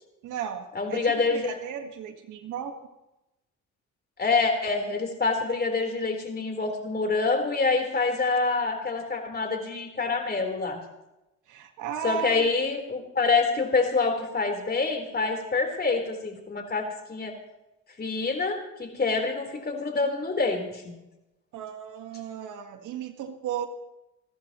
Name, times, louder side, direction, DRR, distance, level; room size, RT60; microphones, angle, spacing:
voice 1, 0.2-2.7 11.5-12.5 21.5-23.7, right 9 dB, 85° right, 5 dB, 1.7 m, -35 dB
voice 2, 0.7-1.5 4.2-10.8 12.0-16.8 17.1-17.3 18.0-20.9, left 4 dB, 30° left, 2 dB, 4.1 m, -26 dB
28.5 x 13.5 x 3.1 m, 0.95 s
cardioid pair, 90°, 30 cm